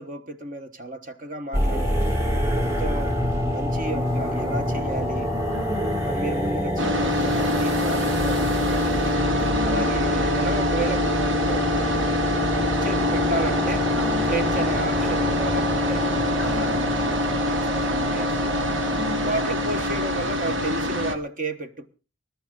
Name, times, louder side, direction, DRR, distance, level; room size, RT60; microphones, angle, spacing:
voice 1, 0.0-2.2 2.6-3.2 3.5-5.3 6.0-9.2 9.6-12.5 12.8-13.9 14.3-18.6 19.2-21.9, right 2 dB, 45° right, 1.3 m, -32 dB
sound 1, 1.5-20.7, equal, 15° right, 2.9 m, -26 dB
voice 2, 5.5-5.9 9.4-9.9 13.9-14.3 16.4-16.8 18.8-19.3, left 2 dB, 5° left, 1.1 m, -35 dB
sound 2, 6.8-21.2, left 1 dB, 65° right, 1.6 m, -25 dB
21.0 x 12.0 x 3.9 m
head